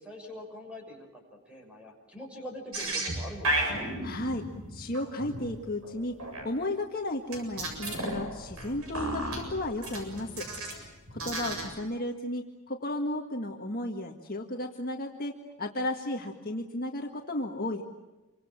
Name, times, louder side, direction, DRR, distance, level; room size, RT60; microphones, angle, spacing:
voice 1, 0.0-3.9 11.2-11.6, equal, 5° right, 2 dB, 6.5 m, -44 dB
sound 1, 2.7-6.4 7.3-10.8 11.1-11.7, right 1 dB, 80° right, 7.6 m, -34 dB
voice 2, 4.0-4.5 4.7-6.1 6.4-10.5 11.1-17.8, left 1 dB, 40° left, 2 dB, 1.8 m, -34 dB
28.0 x 24.5 x 7.5 m, 1.1 s
head